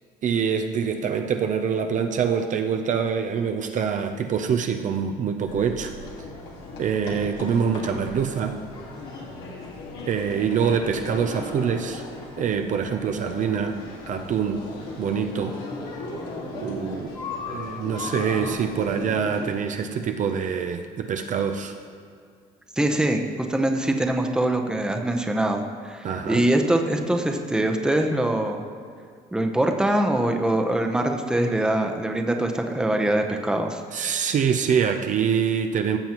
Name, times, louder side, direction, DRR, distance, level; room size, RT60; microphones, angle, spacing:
voice 1, 0.2-5.9 6.8-8.6 10.1-12.0 12.4-13.8 14.1-14.6 15.0-15.7 16.4-17.1 17.5-21.7 26.0-26.4 33.9-36.0, right 7 dB, 50° right, 6 dB, 0.5 m, -25 dB
sound 1, 5.5-19.5, left 3 dB, 85° left, 1.8 m, -36 dB
voice 2, 22.8-23.2 23.5-28.6 29.3-33.8, right 1 dB, 5° right, 3 dB, 0.8 m, -23 dB
15.0 x 7.1 x 3.0 m, 2.2 s
cardioid pair, 110°, 17 cm